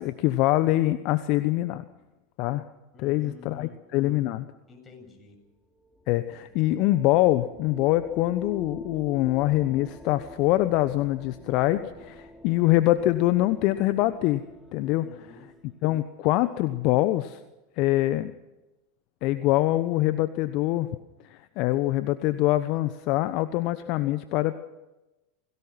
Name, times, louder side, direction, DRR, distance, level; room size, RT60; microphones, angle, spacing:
voice 1, 0.0-1.8 2.4-2.6 3.0-4.4 6.1-14.4 14.7-15.1 15.8-17.4 17.8-18.3 19.2-20.9 21.2-24.5, left 16 dB, 55° left, 12 dB, 1.0 m, -24 dB
voice 2, 2.9-3.8 4.7-5.4 14.9-15.5, left 2 dB, 25° left, 4 dB, 7.6 m, -49 dB
sound 1, 5.3-15.9, equal, 5° right, 3.1 m, -47 dB
28.5 x 18.0 x 5.9 m, 1.0 s
hypercardioid pair, 90°, 0 cm